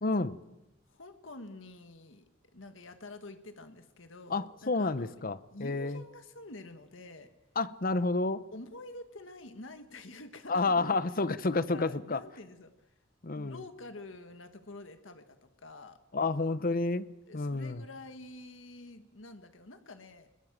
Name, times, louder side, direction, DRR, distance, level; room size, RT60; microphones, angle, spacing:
voice 1, 0.0-0.4 4.3-6.0 7.6-8.4 10.5-12.2 13.2-13.6 16.1-17.1 17.3-17.8, left 3 dB, 50° left, 0.9 m, -30 dB
voice 2, 0.9-2.2 2.5-5.2 5.5-7.3 8.5-11.0 11.5-12.9 13.3-16.0 17.3-20.3, left 2 dB, 85° left, 1.7 m, -48 dB
22.5 x 21.5 x 7.5 m
head